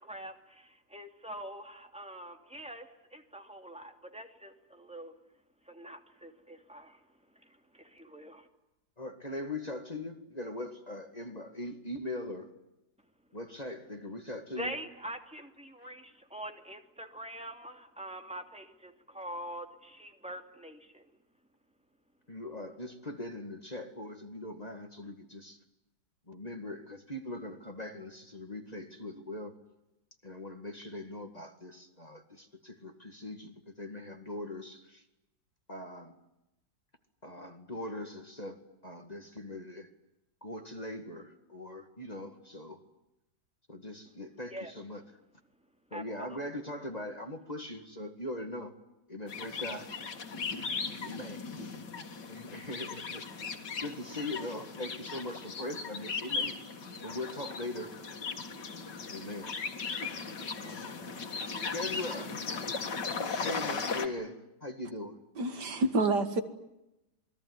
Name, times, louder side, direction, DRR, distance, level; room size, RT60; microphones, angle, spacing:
voice 1, 0.0-5.1 5.6-7.0 7.3-8.5 14.6-21.2 44.5-44.7 45.9-46.4, equal, 5° right, 5 dB, 2.7 m, -44 dB
voice 2, 9.0-12.5 13.3-14.7 15.8-15.9 22.3-25.6 26.3-29.5 30.2-35.0 35.7-36.1 37.2-39.9 40.4-42.8 43.7-45.0 45.9-48.7 49.1-49.9 50.9-51.5 52.3-53.2 53.8-56.6 57.0-57.9 59.1-59.6 60.6-61.0 61.7-62.4 63.4-65.2, left 1 dB, 25° left, 6 dB, 2.2 m, -41 dB
sound 1, 49.3-64.1, left 5 dB, 90° left, 2.7 m, -37 dB
voice 3, 65.4-66.4, right 2 dB, 75° right, 9 dB, 2.5 m, -28 dB
27.5 x 21.5 x 9.7 m, 0.91 s
omnidirectional pair, 1.8 m